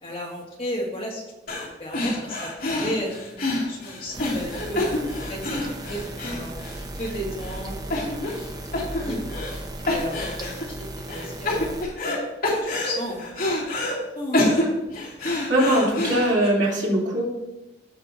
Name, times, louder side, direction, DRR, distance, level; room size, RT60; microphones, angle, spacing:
voice 1, 0.0-1.2 1.6-5.0 5.3-5.6 5.9-6.5 7.0-8.3 8.7-9.5 9.8-11.8 12.4-13.2 14.1-14.4, equal, 30° left, -3 dB, 2.2 m, -34 dB
sound 1, 1.5-1.7 1.9-7.1 7.4-7.6 7.9-8.5 8.7-9.6 9.9-10.6 11.1-12.2 12.4-14.0 14.3-16.5, left 2 dB, 50° left, 2.6 m, -27 dB
sound 2, 4.1-11.8, right 1 dB, 20° right, 0.7 m, -36 dB
voice 2, 15.2-17.3, right 1 dB, 85° right, -4 dB, 3.1 m, -21 dB
16.0 x 5.9 x 2.7 m, 0.96 s
head